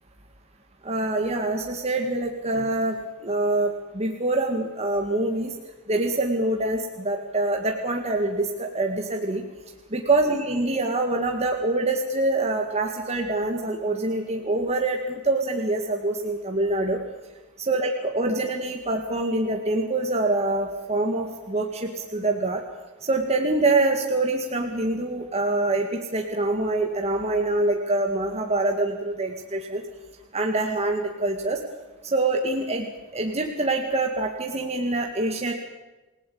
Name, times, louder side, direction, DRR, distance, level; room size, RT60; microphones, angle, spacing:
voice 1, 0.8-3.0 3.2-5.5 5.9-9.4 9.9-17.0 17.7-22.6 23.1-29.8 30.3-31.6 32.0-35.5, right 2 dB, 30° right, 2 dB, 2.0 m, -25 dB
28.5 x 18.5 x 8.7 m, 1.2 s
head